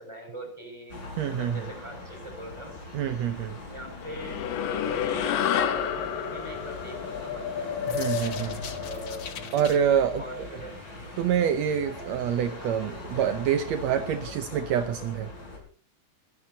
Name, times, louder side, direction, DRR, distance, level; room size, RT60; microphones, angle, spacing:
voice 1, 0.0-1.0 1.3-2.8 3.7-7.7 8.6-9.3 10.2-10.8, equal, 5° right, 2 dB, 6.4 m, -42 dB
sound 1, 0.9-15.6, left 2 dB, 30° left, 5.5 m, -41 dB
voice 2, 1.2-1.7 2.9-3.6 7.9-8.6 9.5-10.2 11.2-15.3, right 8 dB, 75° right, 8 dB, 1.6 m, -26 dB
sound 2, 4.0-8.7, left 9 dB, 80° left, 2.9 m, -30 dB
sound 3, 6.5-9.8, left 6 dB, 55° left, 1.3 m, -34 dB
28.5 x 11.0 x 2.9 m, 0.39 s
omnidirectional pair, 4.0 m